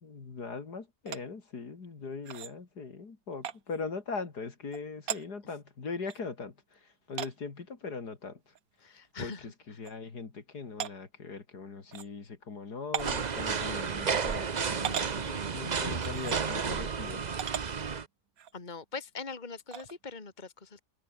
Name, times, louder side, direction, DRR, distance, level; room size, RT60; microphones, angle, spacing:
voice 1, 0.0-6.5 7.1-8.4 9.2-9.3 9.7-17.3, left 4 dB, 65° left, 3.2 m, -40 dB
sound 1, 1.1-1.2 2.3-2.5 3.4-3.6 4.7-4.8 5.1-5.3 6.1-6.2 7.2-7.3 8.6-8.7 9.1-9.2 9.8-9.9 10.8-10.9 11.9-12.1 12.9-13.2 14.1-14.2 14.8-15.1 16.0-16.4 17.4-17.7 18.4-18.5 19.7-19.9, right 9 dB, 55° right, 1.4 m, -36 dB
voice 2, 8.8-9.5 18.5-20.8, left 4 dB, 25° left, 2.4 m, -42 dB
sound 2, 13.0-18.1, right 6 dB, 40° right, 0.6 m, -32 dB
omnidirectional pair, 1.9 m